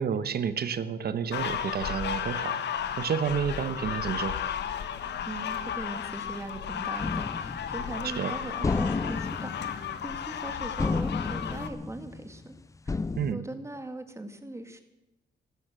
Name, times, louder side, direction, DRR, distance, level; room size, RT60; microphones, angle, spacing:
voice 1, 0.0-2.6 3.0-4.4 8.0-8.3 13.2-13.4, right 7 dB, 65° right, 13 dB, 1.2 m, -30 dB
sound 1, 1.3-11.7, left 8 dB, 80° left, 1.3 m, -34 dB
voice 2, 5.3-9.7 10.0-12.5 12.9-13.0 13.3-14.8, right 2 dB, 15° right, 8 dB, 2.0 m, -40 dB
sound 2, 7.0-8.2 8.6-10.5 10.8-12.5 12.9-13.3, left 3 dB, 20° left, 0.4 m, -32 dB
14.5 x 12.5 x 7.6 m, 0.98 s
cardioid pair, 100°, 18 cm